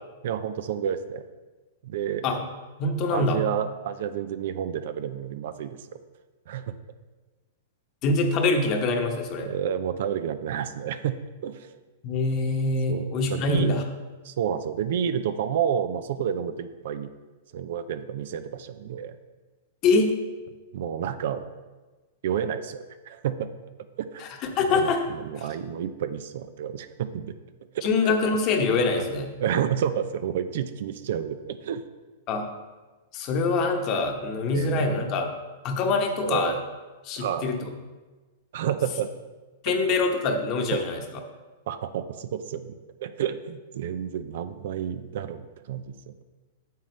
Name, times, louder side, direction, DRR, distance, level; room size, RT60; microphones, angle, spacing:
voice 1, 0.2-1.2 1.8-2.2 3.1-5.8 6.5-6.7 9.4-11.2 11.4-11.7 12.9-13.7 14.2-17.1 17.5-19.1 20.7-21.4 22.2-23.5 24.0-24.2 24.7-27.3 27.7-28.2 29.0-29.1 29.4-31.8 34.5-35.0 36.2-36.6 37.2-37.5 38.5-39.1 39.7-39.8 40.7-40.8 41.7-42.7 43.0-46.1, right 9 dB, 65° right, 11 dB, 0.5 m, -30 dB
voice 2, 2.8-3.4 8.0-9.5 12.0-13.8 19.8-20.1 24.2-25.0 25.4-25.5 27.8-29.3 32.3-32.5 33.1-35.3 35.6-36.6 37.0-37.7 39.6-41.0, left 3 dB, 40° left, 4 dB, 1.1 m, -24 dB
9.2 x 7.4 x 3.2 m, 1.3 s
hypercardioid pair, 125°, 0 cm